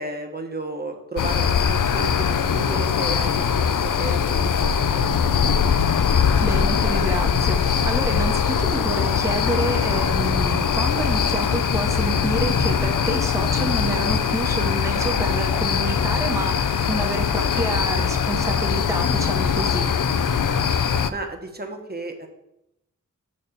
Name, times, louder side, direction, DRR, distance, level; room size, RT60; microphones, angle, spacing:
voice 1, 0.0-5.5 21.1-22.3, right 2 dB, 30° right, 3 dB, 1.2 m, -34 dB
sound 1, 1.2-21.1, left 7 dB, 80° left, 0.5 m, -21 dB
voice 2, 6.4-19.9, right 2 dB, 10° right, 2 dB, 0.9 m, -28 dB
6.7 x 4.3 x 6.6 m, 0.84 s
wide cardioid pair, 65°, 31 cm